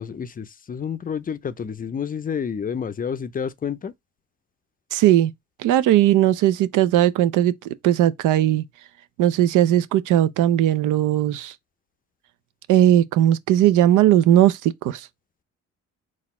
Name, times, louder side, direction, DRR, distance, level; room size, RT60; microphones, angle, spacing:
voice 1, 0.0-3.9, left 7 dB, 30° left, 0.4 m, -29 dB
voice 2, 4.9-5.3 5.6-7.5 7.8-8.6 9.2-11.5 12.7-15.1, right 12 dB, 85° right, 0.5 m, -18 dB
4.1 x 2.4 x 4.1 m
cardioid pair, 90°, 30 cm